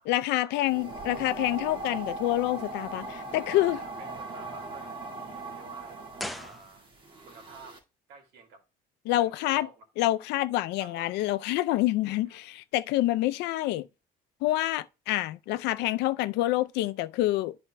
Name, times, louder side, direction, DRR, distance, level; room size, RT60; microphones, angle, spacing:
voice 1, 0.1-3.8 9.1-9.7 10.0-13.9 14.4-17.6, left 16 dB, 90° left, 0.5 m, -27 dB
sound 1, 0.7-7.8, right 2 dB, 30° right, 2.1 m, -39 dB
voice 2, 3.3-6.0 6.3-6.9 7.2-7.8 8.1-8.6 9.2-9.8 10.8-11.2 12.1-12.6, right 3 dB, 90° right, 2.3 m, -50 dB
sound 2, 6.1-7.3 7.5-7.6, equal, ahead, 0.7 m, -40 dB
12.5 x 4.2 x 2.2 m
cardioid pair, 110°, 17 cm